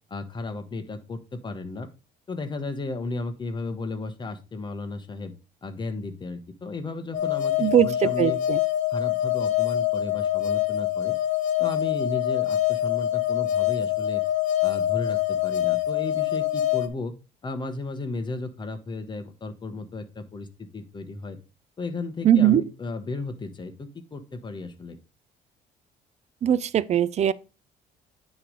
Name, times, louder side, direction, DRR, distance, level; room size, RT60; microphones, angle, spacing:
voice 1, 0.1-1.9 2.3-5.3 5.6-8.4 8.9-11.2 11.6-14.2 14.6-17.1 17.4-21.4 21.8-25.0, left 3 dB, 25° left, 1.2 m, -34 dB
sound 1, 7.1-16.9, left 12 dB, 50° left, 1.4 m, -25 dB
voice 2, 7.6-8.6 22.2-22.6 26.4-27.3, right 10 dB, 40° right, 0.5 m, -20 dB
9.6 x 3.2 x 5.2 m
cardioid pair, 110°, 17 cm